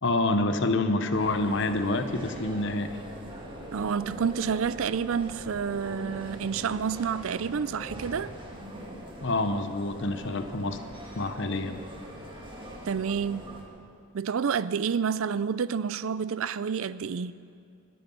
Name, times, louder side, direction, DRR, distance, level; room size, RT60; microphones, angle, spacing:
voice 1, 0.0-3.0 9.2-10.8 11.1-11.8, left 2 dB, 55° left, 0.9 m, -27 dB
sound 1, 1.1-13.6, equal, 20° right, 1.7 m, -42 dB
voice 2, 3.7-8.3 12.9-13.5 14.1-17.3, right 6 dB, 65° right, 0.4 m, -29 dB
21.5 x 9.5 x 5.5 m
head